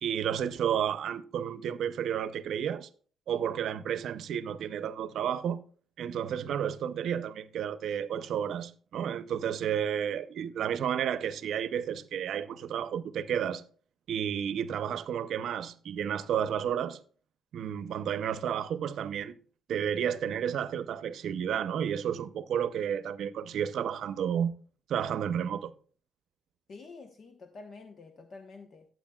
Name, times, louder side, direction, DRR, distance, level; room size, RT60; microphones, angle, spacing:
voice 1, 0.0-2.9 3.3-5.6 6.0-13.6 14.1-17.0 17.5-19.4 19.7-24.5 24.9-25.7, right 9 dB, 70° right, 0.7 m, -31 dB
voice 2, 26.7-28.9, left 3 dB, 50° left, 1.0 m, -48 dB
13.5 x 7.9 x 2.3 m
cardioid pair, 90°, 0 cm